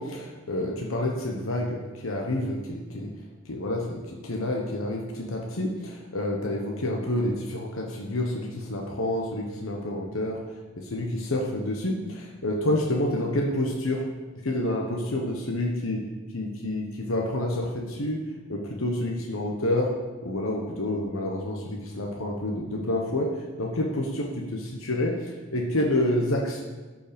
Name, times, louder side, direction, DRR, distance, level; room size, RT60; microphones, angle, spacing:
voice 1, 0.0-3.1 3.4-10.4 10.8-14.0 14.4-16.0 16.3-18.2 18.5-19.9 20.2-23.3 23.6-26.6, left 1 dB, 80° left, 0 dB, 1.1 m, -28 dB
11.5 x 5.4 x 5.2 m, 1.3 s
head